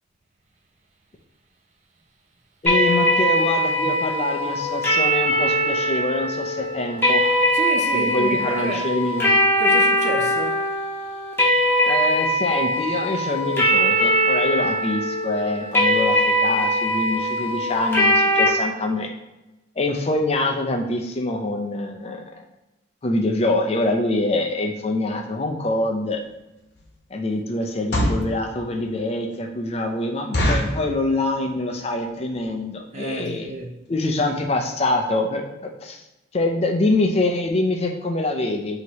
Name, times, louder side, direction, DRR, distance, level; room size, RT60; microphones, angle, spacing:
voice 1, 2.6-7.4 7.9-9.3 11.8-19.1 19.8-22.2 23.0-26.2 27.1-33.5 33.9-36.0 36.3-38.8, left 2 dB, 30° left, 0.4 m, -25 dB
sound 1, 2.7-18.5, equal, 10° left, 0.8 m, -21 dB
voice 2, 7.5-8.8 9.6-10.7 32.9-33.7, right 2 dB, 40° right, 0.5 m, -30 dB
sound 2, 26.1-26.3 26.8-27.0 27.7-28.3 28.9-29.0 29.3-29.4 29.7-29.8 30.3-30.8 31.4-31.7 32.0-32.1 32.3-32.6 33.1-33.2 33.4-33.6 34.0-34.1 34.3-34.4, equal, 55° left, 0.9 m, -23 dB
3.0 x 2.9 x 4.5 m
head